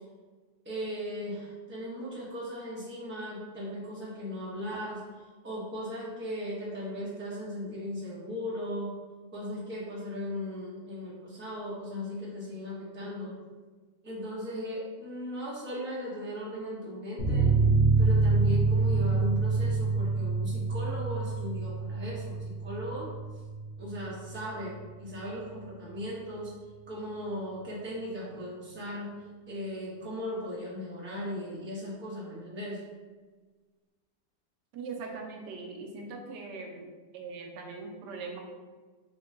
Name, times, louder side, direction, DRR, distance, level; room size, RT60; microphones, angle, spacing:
voice 1, 0.6-9.0 9.3-13.3 14.0-17.5 18.0-23.1 23.8-26.5 26.9-29.2 29.5-32.8, equal, 10° right, -7 dB, 0.6 m, -37 dB
sound 1, 17.2-24.3 24.5-24.7 25.0-25.1, right 3 dB, 60° left, 0.6 m, -26 dB
voice 2, 34.7-36.9 37.1-38.4, right 4 dB, 80° right, 2 dB, 1.2 m, -40 dB
3.8 x 2.2 x 3.6 m, 1.4 s
omnidirectional pair, 1.8 m